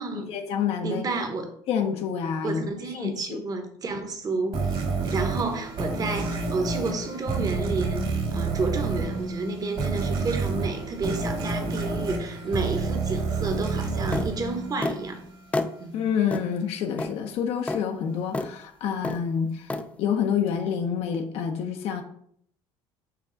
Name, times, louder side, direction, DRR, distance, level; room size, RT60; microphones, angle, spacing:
voice 1, 0.3-1.0 1.7-2.6 2.9-3.4 15.6-22.0, left 7 dB, 65° left, 5 dB, 0.6 m, -28 dB
voice 2, 0.8-1.4 2.4-15.2 15.8-16.0, right 3 dB, 35° right, 6 dB, 0.9 m, -31 dB
sound 1, 4.5-15.3, right 3 dB, 55° right, 1.7 m, -29 dB
sound 2, 14.1-14.3 14.8-15.0 15.5-15.7 16.3-16.5 17.0-17.2 17.7-17.8 18.3-18.5 19.0-19.2 19.7-19.9, left 2 dB, 10° left, 0.3 m, -28 dB
5.7 x 2.4 x 3.8 m, 0.66 s
supercardioid pair, 90°, 11 cm